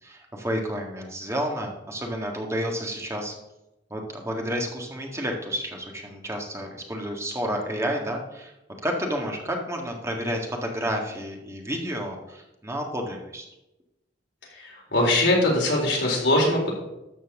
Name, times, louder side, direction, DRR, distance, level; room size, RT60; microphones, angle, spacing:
voice 1, 0.0-3.3 3.9-8.5 8.8-13.5, equal, 15° right, 1 dB, 1.7 m, -30 dB
voice 2, 14.6-16.7, left 1 dB, 70° left, -2 dB, 4.0 m, -22 dB
13.0 x 4.6 x 7.2 m, 0.93 s
head